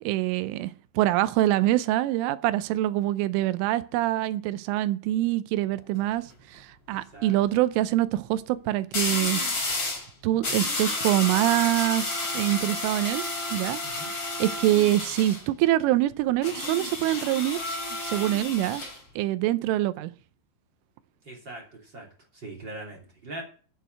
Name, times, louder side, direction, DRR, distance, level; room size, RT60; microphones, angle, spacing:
voice 1, 0.0-9.4 10.2-13.8 14.4-18.8 19.2-20.1, right 15 dB, 85° right, 3.2 m, -25 dB
sound 1, 5.8-6.1 8.9-10.1 10.4-15.4 16.4-19.0, left 2 dB, 25° left, 4.3 m, -31 dB
voice 2, 6.9-7.4 13.8-14.1 21.2-22.1 22.3-23.4, right 2 dB, 30° right, 2.8 m, -41 dB
9.2 x 8.1 x 7.6 m
omnidirectional pair, 5.6 m